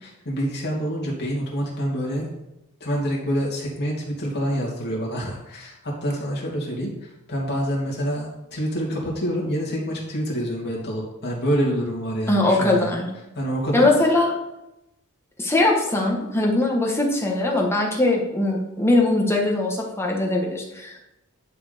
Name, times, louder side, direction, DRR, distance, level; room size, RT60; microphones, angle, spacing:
voice 1, 0.0-2.3 2.8-6.9 7.3-12.9 13.3-13.9, equal, 50° left, -3 dB, 2.7 m, -27 dB
voice 2, 12.3-13.1 13.7-14.3 15.4-21.0, left 2 dB, 10° left, -1 dB, 1.4 m, -21 dB
10.5 x 4.4 x 5.1 m, 0.91 s
head